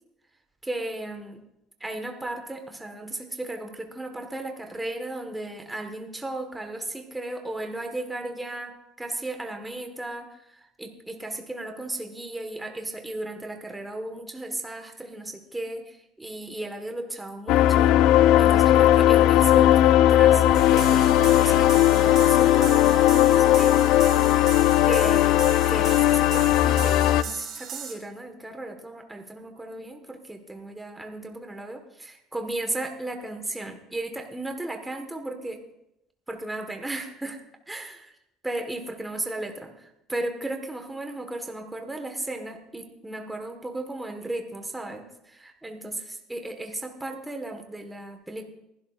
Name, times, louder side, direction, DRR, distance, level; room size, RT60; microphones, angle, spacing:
voice 1, 0.6-1.4 1.8-18.0 18.4-23.8 24.8-35.6 36.3-37.4 37.7-37.9 38.4-48.4, right 2 dB, 10° right, 4 dB, 1.4 m, -35 dB
sound 1, 17.5-27.2, left 13 dB, 70° left, 0.4 m, -18 dB
sound 2, 20.5-27.9, right 8 dB, 55° right, 3.2 m, -37 dB
22.5 x 12.0 x 2.5 m, 0.85 s
supercardioid pair, 105°, 0 cm